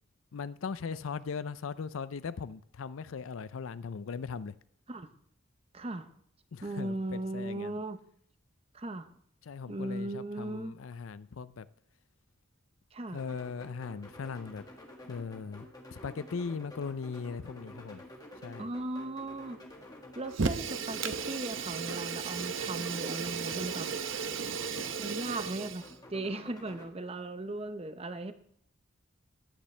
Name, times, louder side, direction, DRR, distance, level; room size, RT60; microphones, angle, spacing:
voice 1, 0.3-4.6 6.5-7.8 9.4-11.7 13.1-14.6 15.1-18.0 18.4-18.7, left 5 dB, 85° left, 0.5 m, -39 dB
voice 2, 5.7-6.1 6.6-8.0 8.7-9.1 9.7-10.8 12.9-13.2 18.6-19.6 20.1-23.9 25.0-28.3, right 2 dB, 30° right, 0.7 m, -37 dB
sound 1, 13.2-26.9, left 1 dB, 20° left, 1.6 m, -50 dB
Fire, 20.3-25.9, right 5 dB, 70° right, 0.7 m, -35 dB
14.5 x 10.0 x 3.3 m
head